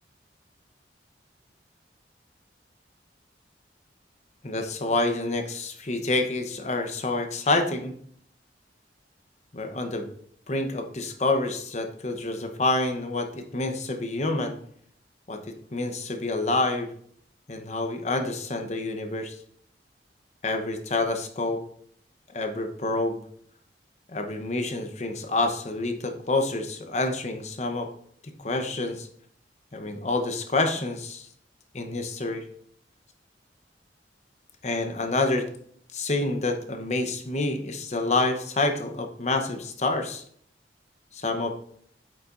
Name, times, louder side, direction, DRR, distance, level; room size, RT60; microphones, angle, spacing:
voice 1, 4.4-7.9 9.5-10.1 10.5-14.6 15.3-15.4 15.7-16.9 17.5-19.4 20.4-21.6 22.3-23.2 24.1-27.9 28.4-29.1 29.7-31.3 31.7-32.4 34.6-35.4 35.9-40.2 41.1-41.5, left 2 dB, 40° left, 5 dB, 0.9 m, -27 dB
8.4 x 7.1 x 2.6 m, 0.62 s
head